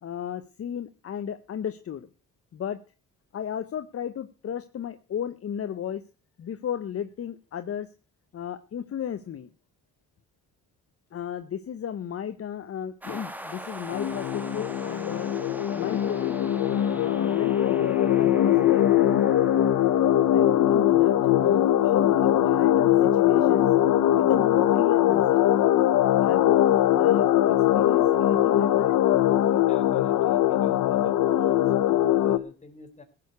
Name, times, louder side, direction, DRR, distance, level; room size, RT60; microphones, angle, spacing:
voice 1, 0.0-2.1 2.5-2.8 3.3-6.0 6.4-7.9 8.3-9.5 11.1-15.3 15.7-16.4 16.9-19.1 20.3-23.7 24.1-25.4 26.2-28.9, left 9 dB, 50° left, 10 dB, 1.0 m, -34 dB
sound 1, 13.0-24.6, right 1 dB, 5° right, 1.6 m, -43 dB
sound 2, 13.9-32.4, left 12 dB, 75° left, 1.0 m, -21 dB
voice 2, 29.5-31.1 31.4-31.6 31.9-33.0, left 2 dB, 25° left, 5 dB, 3.6 m, -49 dB
15.5 x 6.8 x 8.2 m, 0.38 s
cardioid pair, 90°, 30 cm